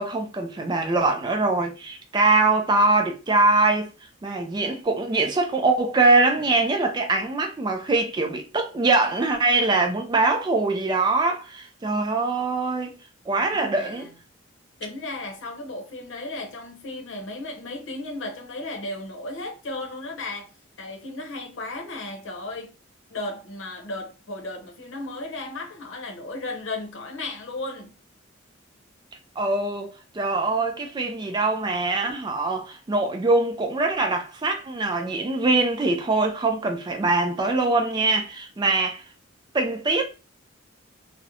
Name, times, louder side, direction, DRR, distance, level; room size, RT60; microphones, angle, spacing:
voice 1, 0.0-3.9 4.2-13.0 13.3-14.1 29.4-39.0 39.5-40.0, right 3 dB, 20° right, 0.3 m, -23 dB
voice 2, 13.5-14.1 14.8-20.5 20.8-22.8 23.1-27.9, left 2 dB, 65° left, 0.7 m, -35 dB
2.5 x 2.0 x 2.7 m
head